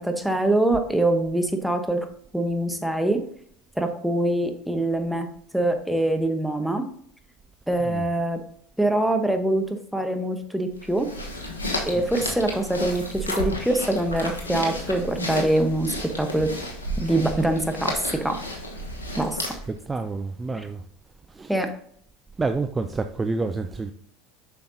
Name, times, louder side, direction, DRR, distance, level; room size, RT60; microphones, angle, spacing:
voice 1, 0.0-2.1 2.3-3.2 3.8-5.3 5.5-6.9 7.7-8.4 8.8-11.1 11.9-16.5 17.0-18.4 19.2-19.4 21.5-21.7, right 1 dB, ahead, 1.1 m, -24 dB
sound 1, 10.8-19.8, left 1 dB, 90° left, 1.2 m, -32 dB
voice 2, 19.7-20.8 21.3-21.6 22.4-23.9, right 3 dB, 20° right, 0.5 m, -28 dB
7.5 x 5.8 x 2.8 m
hypercardioid pair, 75°, 0 cm